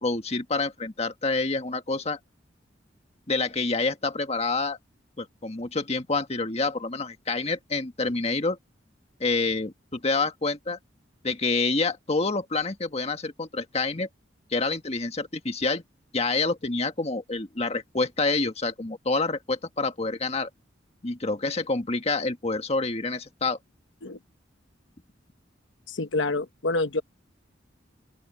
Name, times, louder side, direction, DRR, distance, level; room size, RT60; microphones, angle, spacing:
voice 1, 0.0-2.2 3.3-4.8 5.2-8.6 9.2-10.8 11.2-14.1 14.5-15.8 16.1-20.5 21.0-23.6, left 3 dB, 35° left, 1.7 m, -27 dB
voice 2, 25.9-27.0, left 2 dB, 85° left, 1.1 m, -27 dB
open air
head